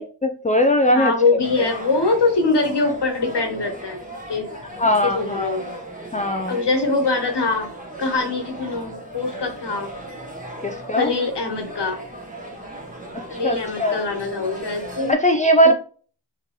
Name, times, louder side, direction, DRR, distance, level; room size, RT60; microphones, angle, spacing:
voice 1, 0.0-1.1 1.6-1.7 4.8-5.5 6.1-6.6 10.6-11.1 13.3-14.0 15.1-15.7, equal, 20° left, 6 dB, 0.4 m, -19 dB
voice 2, 0.9-4.0 4.3-4.5 5.0-5.6 6.5-7.7 8.0-9.9 10.9-12.0 13.3-15.2 15.6-15.7, left 3 dB, 70° left, 3 dB, 1.4 m, -23 dB
sound 1, 1.4-15.1, right 1 dB, 20° right, 1.1 m, -37 dB
4.4 x 3.6 x 3.0 m, 0.42 s
cardioid pair, 50°, 43 cm